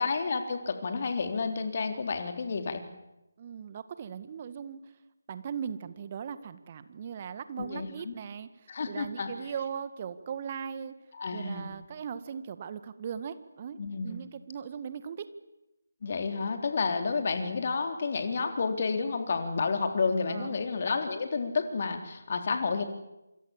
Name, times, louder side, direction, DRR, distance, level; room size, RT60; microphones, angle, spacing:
voice 1, 0.0-2.8 7.6-8.2 8.7-9.3 11.2-11.7 13.8-14.2 16.0-22.8, left 4 dB, 45° left, 5 dB, 3.8 m, -30 dB
voice 2, 3.4-4.8 5.3-8.5 8.9-10.9 11.3-15.3 20.3-20.6, right 7 dB, 30° right, 12 dB, 1.8 m, -39 dB
27.0 x 26.5 x 7.4 m, 0.95 s
figure-of-eight pair, 155°, 0 cm